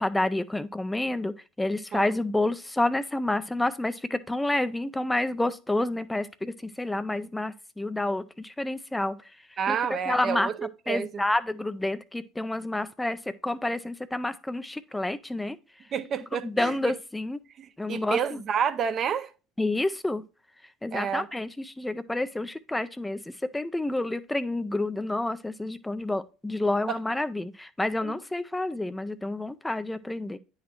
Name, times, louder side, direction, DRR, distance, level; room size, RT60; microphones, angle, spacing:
voice 1, 0.0-10.5 10.9-15.6 16.4-17.4 17.8-18.4 19.6-20.2 20.8-30.4, left 2 dB, 10° left, 0.4 m, -29 dB
voice 2, 9.6-10.5 10.9-11.2 15.9-16.9 17.6-19.3 20.9-21.3 26.9-27.0 28.0-28.2, right 7 dB, 45° right, 0.6 m, -29 dB
9.2 x 4.0 x 2.9 m
hypercardioid pair, 85°, 0 cm